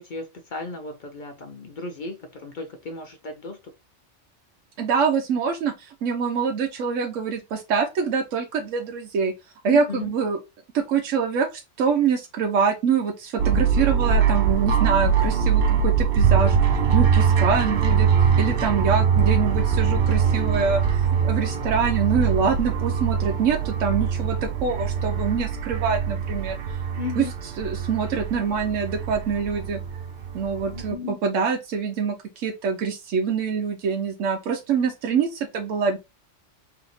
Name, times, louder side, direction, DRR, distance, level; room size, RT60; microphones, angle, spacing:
voice 1, 0.0-3.6 9.6-10.1 16.9-17.0 27.0-27.3 30.7-31.2, left 4 dB, 55° left, 0.6 m, -35 dB
voice 2, 4.8-9.3 9.6-10.4 10.7-16.6 16.9-26.6 27.2-27.3 27.6-29.8 30.3-36.0, right 6 dB, 85° right, 1.0 m, -25 dB
sound 1, 13.4-30.9, right 7 dB, 60° right, 0.7 m, -22 dB
3.2 x 2.8 x 3.9 m
omnidirectional pair, 1.3 m